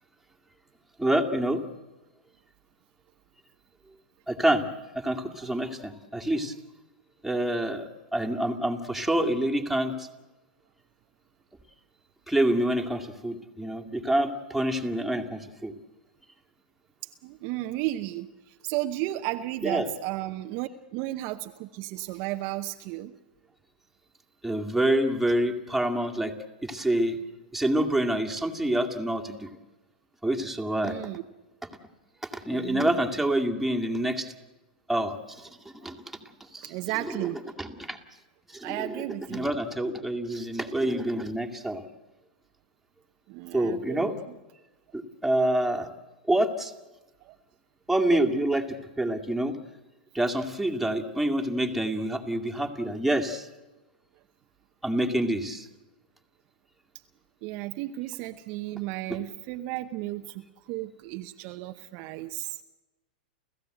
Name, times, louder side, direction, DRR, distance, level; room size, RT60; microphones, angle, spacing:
voice 1, 1.0-1.6 4.3-4.6 4.9-6.5 7.2-10.1 12.3-15.7 19.6-19.8 24.4-26.3 26.6-27.2 27.5-29.5 30.2-31.0 32.2-34.3 34.9-35.5 35.8-36.0 36.5-36.7 37.6-38.0 38.5-38.9 39.3-41.8 43.5-44.1 44.9-45.9 46.3-46.7 47.9-49.6 50.1-53.5 54.8-55.7, right 1 dB, ahead, 1 dB, 2.2 m, -27 dB
voice 2, 17.2-23.1 30.8-31.2 32.5-33.0 35.8-35.9 36.6-37.5 38.6-39.5 43.3-44.4 47.2-47.4 57.4-62.6, right 16 dB, 50° right, 6 dB, 0.9 m, -34 dB
29.5 x 15.0 x 7.9 m, 1.1 s
hypercardioid pair, 110°, 5 cm